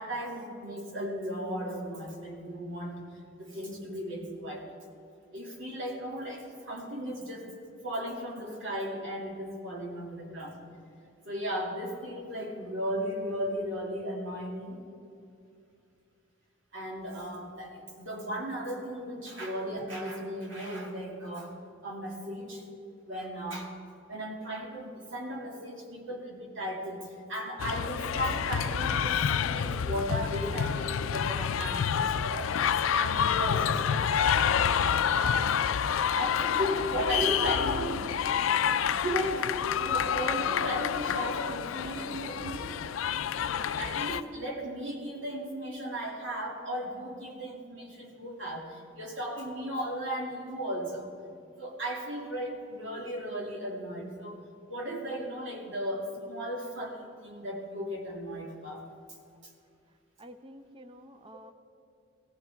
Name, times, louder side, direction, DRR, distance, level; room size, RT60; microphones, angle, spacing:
voice 1, 0.0-3.0 3.4-4.7 5.3-7.6 7.8-10.6 11.2-14.8 16.7-21.5 21.8-22.6 23.1-23.7 24.1-32.5 32.9-35.4 36.1-38.3 39.0-42.7 43.4-51.1 51.5-54.4 54.7-58.9 59.4-59.5, equal, 70° right, -1 dB, 2.4 m, -36 dB
sound 1, 27.6-44.2, left 8 dB, 85° left, 0.4 m, -28 dB
voice 2, 59.9-61.5, equal, 25° right, 9 dB, 0.6 m, -50 dB
17.5 x 15.0 x 3.5 m, 2.5 s
head